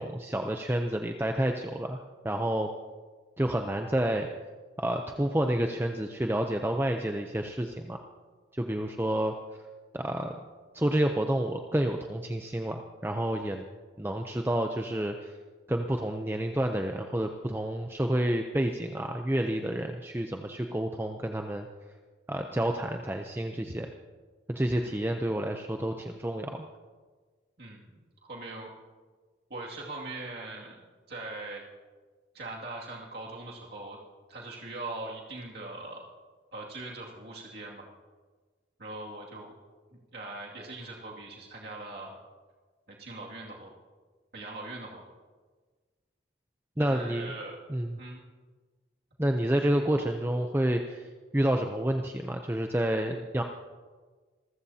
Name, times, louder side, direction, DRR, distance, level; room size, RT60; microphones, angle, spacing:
voice 1, 0.0-2.0 2.2-2.7 3.4-4.3 4.8-8.0 8.5-9.6 9.9-10.4 10.7-13.6 14.0-15.3 15.7-21.7 22.3-23.9 24.5-26.7 46.8-47.3 47.7-48.0 49.2-51.1 51.3-53.4, right 1 dB, 10° right, 4 dB, 0.6 m, -29 dB
voice 2, 27.6-28.7 29.5-30.8 31.1-31.6 32.3-34.0 34.3-36.0 36.5-37.9 38.8-39.5 40.1-42.2 42.9-43.7 44.3-45.0 46.8-47.6 47.9-48.2, right 2 dB, 55° right, -3 dB, 2.3 m, -41 dB
26.5 x 14.5 x 2.8 m, 1.4 s
head